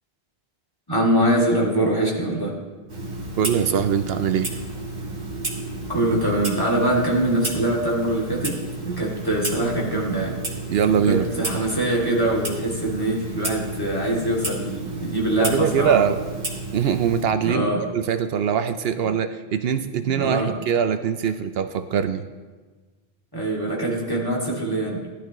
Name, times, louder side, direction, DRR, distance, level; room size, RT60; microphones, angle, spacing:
voice 1, 0.9-2.6 5.9-10.4 11.0-16.0 17.4-17.8 20.0-20.5 23.3-25.0, right 1 dB, 20° left, -3 dB, 2.5 m, -23 dB
Clock, 2.9-17.2, right 2 dB, 45° right, 1.7 m, -32 dB
voice 2, 3.4-4.5 10.7-11.3 15.4-16.2 16.7-22.2, right 8 dB, 75° right, 10 dB, 0.8 m, -22 dB
17.0 x 12.0 x 3.0 m, 1.4 s
omnidirectional pair, 1.0 m